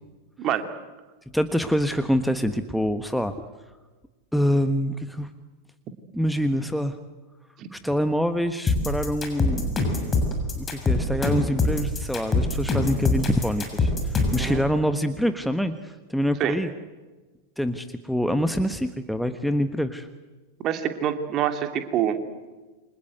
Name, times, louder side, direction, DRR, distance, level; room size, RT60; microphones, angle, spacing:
voice 1, 0.4-0.7 7.6-7.7 14.4-14.6 16.4-16.5 20.6-22.2, right 10 dB, 35° right, 7 dB, 2.9 m, -26 dB
voice 2, 1.3-3.3 4.3-5.3 6.1-7.0 7.7-9.8 10.5-16.7 17.6-20.1, equal, ahead, 9 dB, 1.3 m, -25 dB
sound 1, 8.7-14.5, left 3 dB, 20° left, 6.8 m, -23 dB
29.0 x 26.0 x 8.0 m, 1.2 s
figure-of-eight pair, 90°, 0 cm